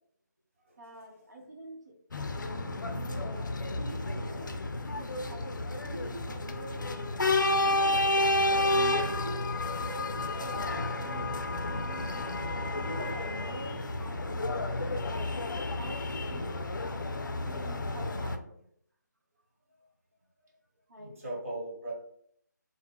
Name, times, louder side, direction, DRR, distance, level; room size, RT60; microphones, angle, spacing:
voice 1, 0.8-1.9 2.8-5.5 5.8-7.8 8.5-9.4 9.7-12.5 12.7-14.4 15.7-16.6 17.4-18.6 20.9-21.1, right 2 dB, 65° right, 0 dB, 0.7 m, -46 dB
sound 1, 2.1-18.4, left 2 dB, 80° left, 0.4 m, -31 dB
voice 2, 8.8-9.2 17.3-17.5 21.0-21.9, right 1 dB, 40° right, -5 dB, 1.2 m, -39 dB
sound 2, 9.6-13.7, right 4 dB, 40° left, 0.8 m, -50 dB
2.1 x 2.0 x 3.4 m, 0.67 s
figure-of-eight pair, 160°, 10 cm